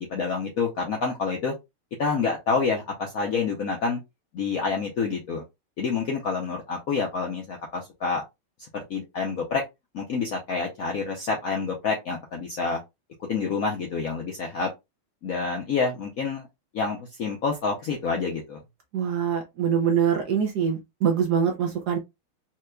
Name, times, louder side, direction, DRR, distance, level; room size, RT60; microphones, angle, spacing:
voice 1, 0.0-1.5 2.0-4.0 4.3-5.4 5.8-8.2 8.7-9.6 9.9-12.8 13.3-14.7 15.2-16.4 16.7-18.6, left 4 dB, 65° left, 0.8 m, -28 dB
voice 2, 18.9-22.0, right 7 dB, 65° right, 1.0 m, -24 dB
4.4 x 2.9 x 2.3 m
omnidirectional pair, 2.3 m